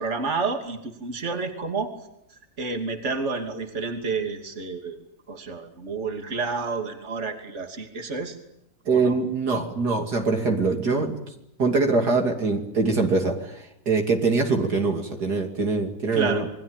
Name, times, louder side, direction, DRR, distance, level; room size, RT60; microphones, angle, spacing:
voice 1, 0.0-1.9 2.6-5.0 5.3-8.4 8.9-9.2 16.1-16.5, right 4 dB, 40° right, 5 dB, 3.2 m, -29 dB
voice 2, 8.9-11.1 11.6-16.5, right 3 dB, 60° right, 3 dB, 3.3 m, -23 dB
28.0 x 22.0 x 9.0 m, 0.80 s
omnidirectional pair, 2.0 m